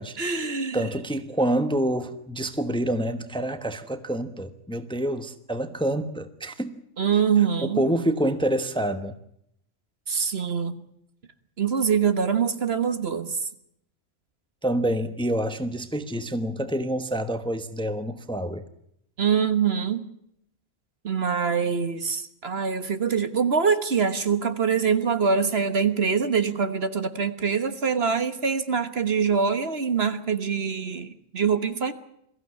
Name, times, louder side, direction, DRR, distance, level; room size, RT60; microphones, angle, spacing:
voice 1, 0.2-0.9 7.0-7.8 10.1-10.8 11.6-13.4 19.2-20.1 21.0-31.9, right 6 dB, 55° right, 1.5 m, -24 dB
voice 2, 0.7-6.7 7.6-9.2 14.6-18.7, right 1 dB, 5° left, 1.0 m, -27 dB
22.5 x 15.0 x 9.8 m
omnidirectional pair, 1.3 m